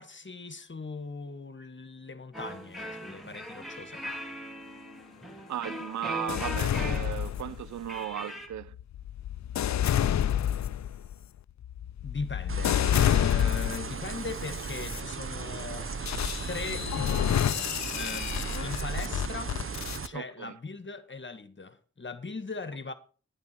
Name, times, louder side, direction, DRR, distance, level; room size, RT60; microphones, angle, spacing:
voice 1, 0.0-4.0 5.4-5.5 12.0-15.9 16.5-19.6 20.1-22.9, left 4 dB, 40° left, 1.4 m, -39 dB
sound 1, 2.3-8.5, equal, ahead, 2.7 m, -39 dB
voice 2, 5.5-8.8 20.1-20.5, right 11 dB, 75° right, 0.5 m, -36 dB
sound 2, 6.3-7.9 8.5-14.0 14.6-15.0 16.1-20.1, left 10 dB, 70° left, 0.5 m, -29 dB
sound 3, 12.5-20.1, right 5 dB, 45° right, 1.0 m, -36 dB
10.0 x 9.5 x 5.7 m
wide cardioid pair, 70°, 29 cm